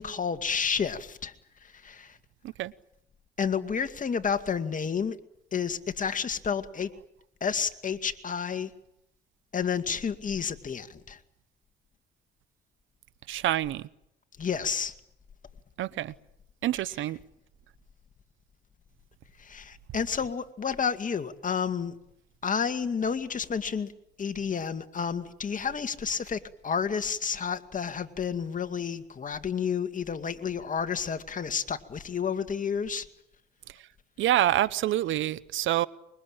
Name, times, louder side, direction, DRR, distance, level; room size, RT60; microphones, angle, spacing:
voice 1, 0.0-1.3 1.6-2.2 3.4-5.2 5.5-6.9 7.4-8.7 9.5-11.2 14.4-14.9 19.4-22.0 22.4-23.9 24.2-33.1, left 6 dB, 40° left, 2.2 m, -30 dB
voice 2, 13.3-13.9 15.8-16.1 16.6-17.2 34.2-35.9, right 13 dB, 80° right, 0.9 m, -27 dB
25.0 x 23.0 x 8.9 m
cardioid pair, 90°, 20 cm